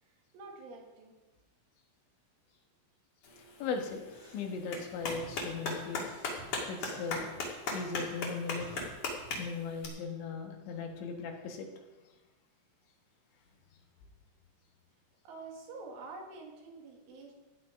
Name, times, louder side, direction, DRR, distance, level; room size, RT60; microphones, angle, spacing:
voice 1, 0.0-1.1 15.2-17.3, right 3 dB, 80° right, 0 dB, 4.8 m, -47 dB
Clapping, 3.2-9.9, left 3 dB, 50° left, 3.1 m, -39 dB
voice 2, 3.6-6.1 6.7-7.3 7.7-8.7 9.4-11.7, left 5 dB, 75° left, 3 dB, 3.7 m, -38 dB
sound 1, 4.0-9.0, left 2 dB, 25° left, 1.2 m, -54 dB
16.0 x 9.6 x 5.3 m, 1.1 s
omnidirectional pair, 5.6 m